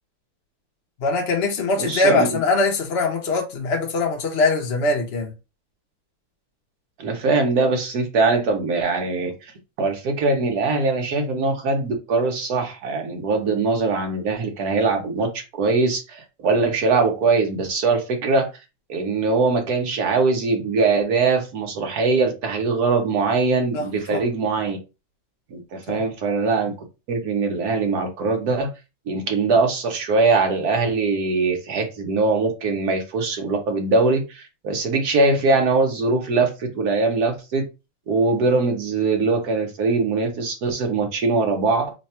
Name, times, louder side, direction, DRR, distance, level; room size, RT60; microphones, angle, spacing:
voice 1, 1.0-5.3 23.7-24.2 25.9-26.0, left 3 dB, 50° left, 0.7 m, -22 dB
voice 2, 1.8-2.4 7.0-9.5 9.8-18.5 18.9-24.8 25.5-26.7 27.1-28.7 29.1-37.6 38.1-41.9, right 3 dB, 60° right, 1.2 m, -22 dB
3.3 x 2.2 x 4.1 m
omnidirectional pair, 2.1 m